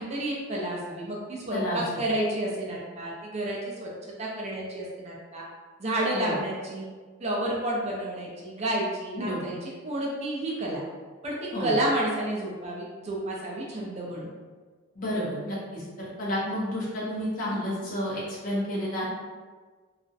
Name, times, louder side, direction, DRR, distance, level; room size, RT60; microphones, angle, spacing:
voice 1, 0.0-3.9 4.2-5.4 5.8-6.9 7.2-10.8 11.2-14.3, right 1 dB, 30° right, -4 dB, 0.4 m, -30 dB
voice 2, 9.2-9.5 11.5-11.7 14.9-19.1, equal, 40° left, -7 dB, 0.6 m, -31 dB
2.4 x 2.0 x 2.6 m, 1.4 s
head